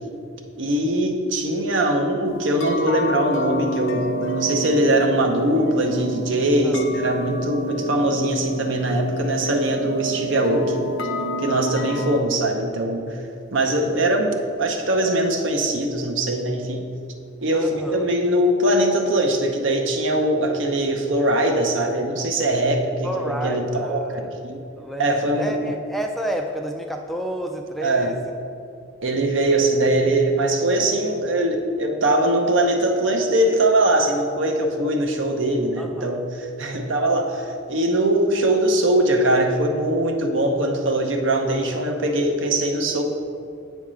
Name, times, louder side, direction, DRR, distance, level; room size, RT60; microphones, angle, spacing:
voice 1, 0.6-10.9 11.4-13.2 13.5-16.8 17.4-24.6 25.0-25.7 27.8-28.1 29.0-43.0, right 1 dB, 75° right, 4 dB, 0.8 m, -21 dB
sound 1, 2.3-12.2, equal, 90° left, 0.6 m, -28 dB
voice 2, 17.5-18.0 23.0-24.3 24.8-28.2 35.8-36.2 36.6-36.9 41.7-42.0, right 1 dB, ahead, 3 dB, 0.3 m, -31 dB
8.5 x 3.5 x 6.2 m, 2.5 s
head